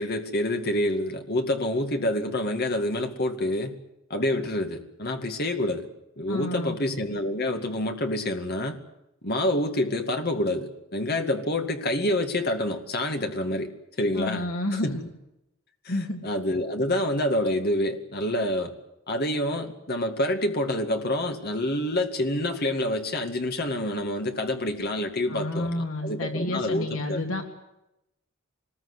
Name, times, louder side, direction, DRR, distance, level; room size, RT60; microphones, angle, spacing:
voice 1, 0.0-3.8 4.1-5.9 6.2-8.8 9.2-13.7 14.0-15.0 15.8-16.0 16.2-18.7 19.1-27.2, left 1 dB, 50° left, 5 dB, 2.2 m, -27 dB
voice 2, 6.3-6.8 14.2-15.0 15.9-16.2 25.3-27.4, left 1 dB, 75° left, 2 dB, 3.3 m, -30 dB
25.5 x 20.5 x 8.2 m, 0.88 s
head